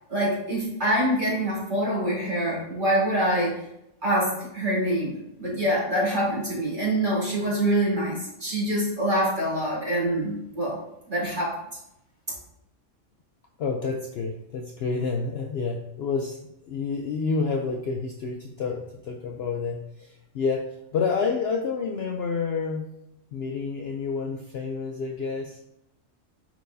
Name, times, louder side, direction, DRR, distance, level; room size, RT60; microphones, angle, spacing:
voice 1, 0.1-3.5 4.0-10.8 11.1-11.5, right 1 dB, 35° right, -7 dB, 2.7 m, -25 dB
voice 2, 13.6-16.4 16.6-22.9 23.3-25.6, left 4 dB, 60° left, 3 dB, 0.7 m, -29 dB
9.2 x 4.5 x 2.7 m, 0.83 s
omnidirectional pair, 1.4 m